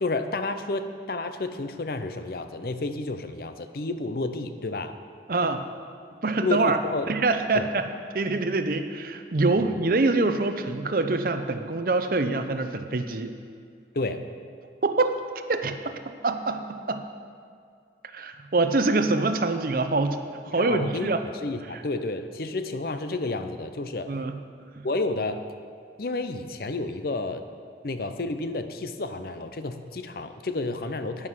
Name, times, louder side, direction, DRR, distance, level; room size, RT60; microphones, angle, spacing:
voice 1, 0.0-5.0 6.4-7.1 7.5-7.7 9.6-9.8 13.9-14.2 20.5-21.1 21.4-24.1 24.8-25.4 26.0-27.4 27.8-31.3, left 2 dB, 55° left, 9 dB, 0.6 m, -30 dB
voice 2, 5.3-5.6 6.2-6.8 7.1-7.9 8.1-13.3 14.8-15.2 15.5-15.9 16.2-17.0 18.1-20.2 20.4-21.2 24.1-24.4 24.8-24.9, right 3 dB, 50° right, 8 dB, 0.6 m, -25 dB
9.9 x 9.6 x 5.7 m, 2.3 s
head